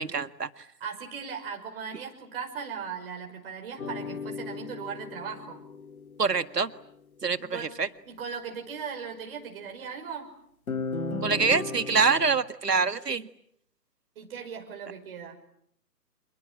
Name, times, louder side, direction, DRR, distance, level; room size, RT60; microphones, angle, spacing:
voice 1, 0.0-0.7 6.2-6.7 7.2-7.9 11.2-13.3, right 5 dB, 70° right, 12 dB, 1.8 m, -25 dB
voice 2, 0.8-5.6 7.5-7.7 8.1-10.3 14.2-15.4, right 6 dB, 35° right, 2 dB, 5.7 m, -38 dB
sound 1, 3.8-6.4 10.7-12.4, left 3 dB, 60° left, 3.3 m, -35 dB
28.0 x 27.5 x 7.7 m, 0.71 s
figure-of-eight pair, 145°, 49 cm